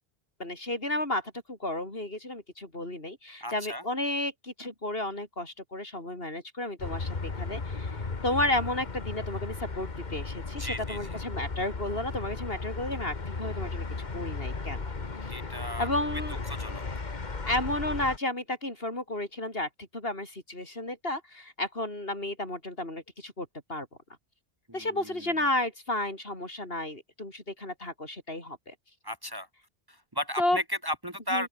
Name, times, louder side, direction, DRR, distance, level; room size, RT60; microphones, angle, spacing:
voice 1, 0.4-8.0 8.2-14.8 15.2-15.3 15.8-16.4 17.5-23.9 24.7-28.7 30.4-30.6 31.3-31.5, left 1 dB, 65° left, 6.1 m, -32 dB
voice 2, 3.4-3.8 10.6-11.2 15.3-15.9 16.5-16.8 24.7-25.5 29.0-29.5 29.9-31.5, equal, 20° right, 2.2 m, -35 dB
sound 1, 6.8-18.2, left 4 dB, 45° left, 1.8 m, -35 dB
open air
omnidirectional pair, 1.1 m